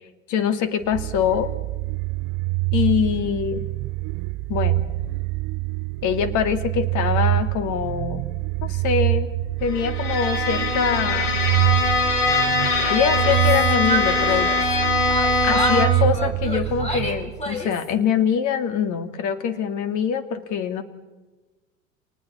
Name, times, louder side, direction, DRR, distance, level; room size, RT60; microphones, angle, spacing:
voice 1, 0.3-1.5 2.7-3.7 4.5-4.8 6.0-8.3 8.6-9.3 9.6-11.4 12.9-14.6 15.4-20.8, left 7 dB, 50° left, 9 dB, 2.5 m, -24 dB
sound 1, 0.9-17.7, right 19 dB, 50° right, 0.7 m, -25 dB
Bowed string instrument, 9.7-16.1, left 3 dB, 65° left, 5.1 m, -22 dB
Yell, 13.1-14.8 15.1-17.9, right 1 dB, 15° left, 4.9 m, -30 dB
30.0 x 27.0 x 4.4 m, 1.2 s
hypercardioid pair, 80°, 39 cm